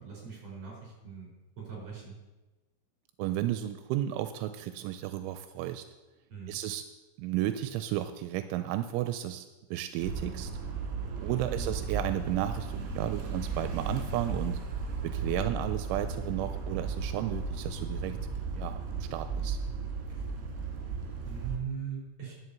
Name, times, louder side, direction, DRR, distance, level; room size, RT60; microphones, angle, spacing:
voice 1, 0.0-2.2 6.3-6.6 11.3-11.7 15.4-15.6 21.2-22.3, right 7 dB, 35° right, -2 dB, 5.4 m, -41 dB
voice 2, 3.2-5.8 6.5-6.8 7.2-10.5 11.2-14.6 15.0-18.2 18.5-19.6, right 13 dB, 85° right, 9 dB, 3.0 m, -33 dB
sound 1, 10.0-21.6, right 4 dB, 65° right, 3.6 m, -35 dB
11.0 x 7.7 x 7.1 m, 1.1 s
omnidirectional pair, 5.5 m